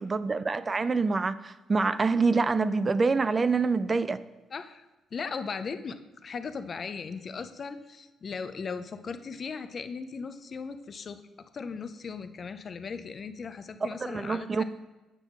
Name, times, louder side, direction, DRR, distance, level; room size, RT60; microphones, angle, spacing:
voice 1, 0.0-4.2 13.8-14.6, right 4 dB, 30° right, 0.4 m, -26 dB
voice 2, 4.5-4.9 5.1-11.2 11.5-14.6, left 5 dB, 45° left, 0.5 m, -37 dB
8.1 x 3.6 x 5.9 m
cardioid pair, 90°, 0 cm